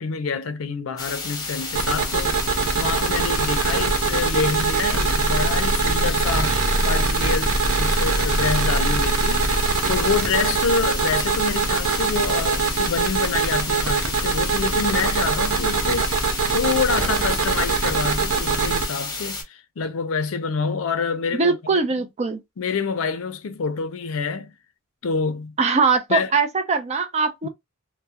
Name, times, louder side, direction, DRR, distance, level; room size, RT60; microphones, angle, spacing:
voice 1, 0.0-7.5 7.8-16.1 16.5-22.1 22.6-24.5 25.0-25.5 26.1-26.3 27.4-27.5, left 5 dB, 70° left, 0.5 m, -27 dB
sound 1, 1.0-19.4, left 3 dB, 20° left, 0.7 m, -32 dB
sound 2, 1.7-18.9, right 4 dB, 85° right, 0.6 m, -22 dB
voice 2, 21.4-22.4 25.6-27.5, right 4 dB, 30° right, 0.5 m, -21 dB
2.2 x 2.1 x 2.7 m
head